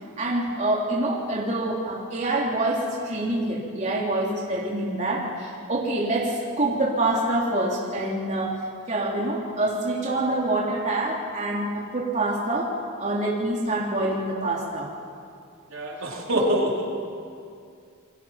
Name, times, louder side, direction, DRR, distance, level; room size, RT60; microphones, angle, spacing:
voice 1, 0.2-8.6 8.9-12.7 13.0-14.9 16.3-16.5, right 2 dB, 35° right, -3 dB, 3.2 m, -26 dB
voice 2, 15.7-16.8, right 1 dB, 70° right, -2 dB, 4.2 m, -25 dB
29.0 x 24.0 x 5.9 m, 2.4 s
head